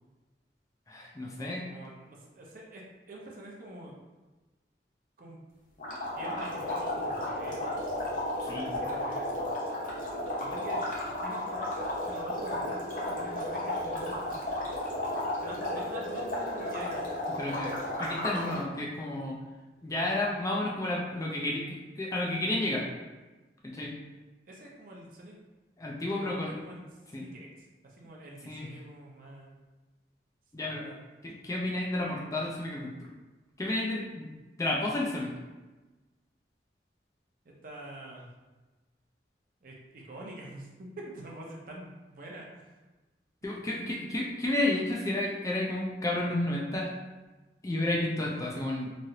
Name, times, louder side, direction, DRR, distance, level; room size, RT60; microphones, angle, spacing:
voice 1, 0.9-1.6 8.4-8.7 17.4-19.4 19.8-22.9 23.7-23.9 25.8-26.6 27.1-27.2 28.5-28.7 30.5-30.8 31.2-32.9 33.6-34.3 34.6-35.3 43.4-46.9 47.6-48.9, left 1 dB, 20° left, -3 dB, 0.4 m, -31 dB
voice 2, 1.4-3.9 5.2-5.4 6.1-7.7 8.5-9.5 10.4-14.4 15.3-17.0 24.5-25.3 26.1-26.9 27.1-29.6 30.6-31.0 37.4-38.3 39.6-42.8, right 1 dB, 50° right, -2 dB, 0.6 m, -46 dB
sound 1, 5.8-18.6, left 1 dB, 50° left, 0.7 m, -33 dB
3.1 x 2.4 x 2.7 m, 1.2 s
head